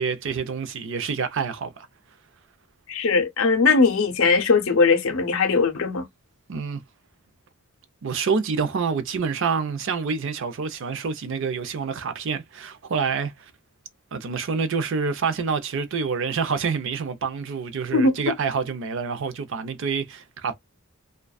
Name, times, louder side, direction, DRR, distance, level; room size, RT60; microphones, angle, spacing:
voice 1, 0.0-1.9 6.5-6.8 8.0-13.5 14.1-20.5, right 5 dB, 60° right, 0.5 m, -27 dB
voice 2, 2.9-6.1 17.9-18.3, left 4 dB, 70° left, 0.6 m, -20 dB
2.5 x 2.2 x 2.2 m
head